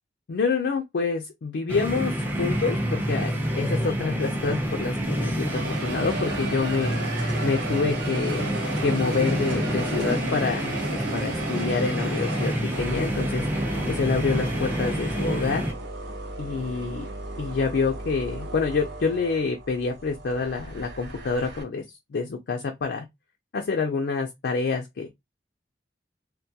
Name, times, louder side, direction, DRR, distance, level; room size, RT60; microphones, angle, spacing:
voice 1, 0.3-7.0 7.4-8.5 8.8-13.5 13.9-15.6 16.4-17.1 17.4-21.8 22.1-23.1 23.5-25.1, left 4 dB, 65° left, 0.4 m, -27 dB
sound 1, 1.7-15.7, equal, 10° right, 0.5 m, -28 dB
sound 2, 2.2-5.0 5.4-21.6, right 2 dB, 85° right, 0.8 m, -36 dB
2.2 x 2.2 x 2.7 m
head